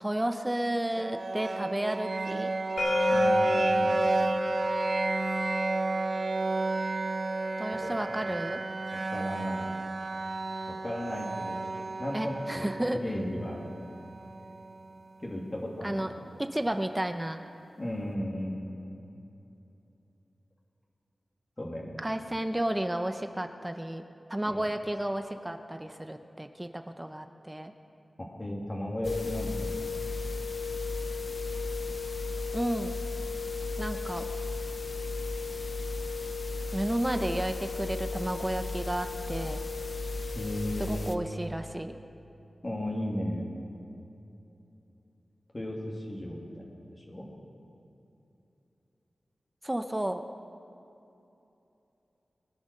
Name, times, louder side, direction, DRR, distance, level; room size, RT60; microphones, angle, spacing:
voice 1, 0.0-2.5 7.6-8.6 12.1-13.0 15.8-16.1 16.4-17.4 22.0-27.7 32.5-33.0 33.8-34.3 36.7-39.6 40.8-41.9 49.6-50.2, right 1 dB, 15° right, 7 dB, 0.7 m, -32 dB
sound 1, 1.0-14.9, right 3 dB, 50° right, 0.3 m, -32 dB
sound 2, 2.8-8.6, left 2 dB, 90° left, 4.4 m, -31 dB
voice 2, 3.1-4.1 7.7-7.9 8.2-8.3 8.9-9.7 10.7-11.6 12.0-13.7 15.2-16.1 17.8-18.6 21.6-22.0 24.5-24.7 28.2-29.9 40.3-41.1 42.6-43.4 45.5-47.3, left 1 dB, 30° left, -2 dB, 2.6 m, -35 dB
sound 3, 29.0-41.1, left 3 dB, 50° left, 0.7 m, -35 dB
22.0 x 8.7 x 6.6 m, 2.9 s
wide cardioid pair, 65°, 0 cm